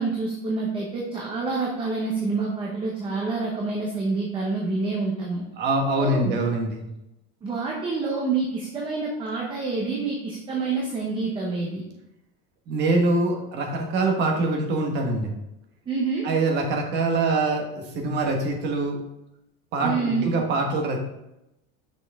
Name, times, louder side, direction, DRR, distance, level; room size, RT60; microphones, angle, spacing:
voice 1, 0.0-5.4 6.0-6.4 7.4-11.8 15.9-16.3 19.8-20.3, right 4 dB, 15° right, -1 dB, 0.8 m, -27 dB
voice 2, 5.6-6.8 12.7-15.3 16.2-19.0 19.7-21.0, right 2 dB, 35° right, 2 dB, 1.3 m, -24 dB
6.1 x 6.0 x 3.5 m, 0.88 s
cardioid pair, 170°, 29 cm